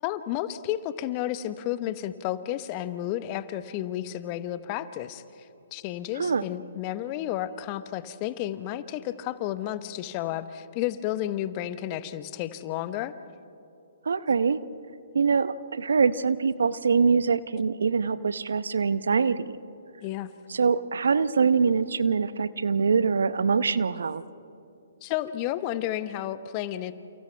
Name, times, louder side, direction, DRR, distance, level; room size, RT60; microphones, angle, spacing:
voice 1, 0.0-13.1 20.0-20.3 25.0-26.9, left 13 dB, 35° left, 13 dB, 1.0 m, -32 dB
voice 2, 14.0-14.6 15.1-19.5 20.5-24.2, right 5 dB, 70° right, 15 dB, 0.8 m, -24 dB
29.5 x 29.5 x 3.4 m, 2.7 s
figure-of-eight pair, 125°, 0 cm